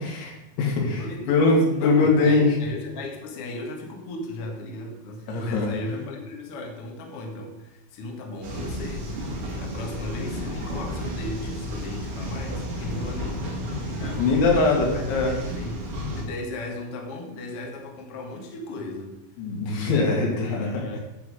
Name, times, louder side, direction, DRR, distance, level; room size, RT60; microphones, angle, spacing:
voice 1, 0.0-2.5 5.3-5.7 10.3-10.4 14.2-15.3 19.4-20.7, left 3 dB, 85° left, -1 dB, 4.4 m, -22 dB
voice 2, 0.8-9.3 9.6-14.5 14.7-15.8 16.1-19.1 20.3-21.0, left 2 dB, 65° left, 1 dB, 1.4 m, -36 dB
sound 1, 8.4-16.2, equal, 50° right, 1.7 m, -32 dB
10.5 x 7.5 x 4.9 m, 0.90 s
omnidirectional pair, 5.1 m